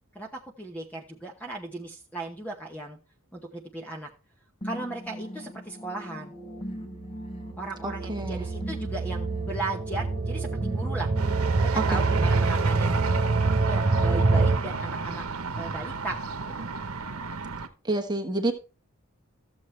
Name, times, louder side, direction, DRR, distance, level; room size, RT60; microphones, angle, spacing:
voice 1, 0.1-3.0 3.3-4.1 4.6-6.3 7.6-11.1 11.6-13.0 13.6-15.2 15.6-16.7, right 2 dB, 5° left, 2 dB, 0.9 m, -36 dB
sound 1, 4.6-12.6, equal, 25° left, 1.1 m, -40 dB
sound 2, 7.0-14.6, right 3 dB, 40° right, 0.6 m, -26 dB
voice 2, 7.8-8.4 11.8-12.0 17.8-18.5, right 2 dB, 20° right, 4 dB, 1.2 m, -28 dB
sound 3, 11.2-17.7, right 4 dB, 85° right, 1.0 m, -31 dB
13.5 x 7.2 x 3.2 m, 0.32 s
head